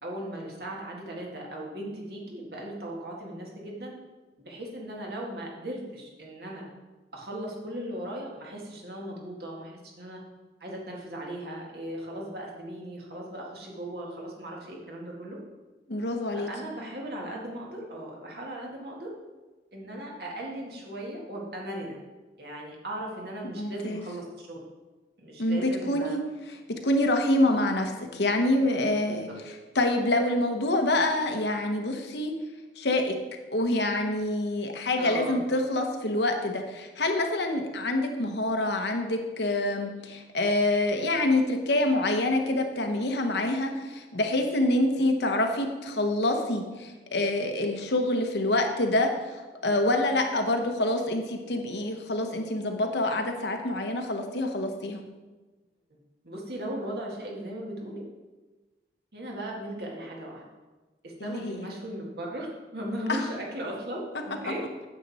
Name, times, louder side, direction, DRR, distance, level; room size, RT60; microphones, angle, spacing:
voice 1, 0.0-4.0 4.4-6.7 7.1-10.2 10.6-15.4 16.3-19.1 19.7-22.0 22.4-24.6 25.2-26.2 29.1-29.3 35.0-35.4 44.9-45.0 56.2-58.0 59.1-60.4 61.0-62.5 62.7-64.6, right 1 dB, 60° right, -2 dB, 2.1 m, -37 dB
voice 2, 15.9-16.5 23.6-24.0 25.4-26.2 26.8-29.3 29.7-32.3 32.8-33.1 33.5-55.0 61.2-61.6 63.1-63.2, left 1 dB, 75° left, 4 dB, 1.1 m, -26 dB
9.1 x 7.6 x 4.3 m, 1.2 s
head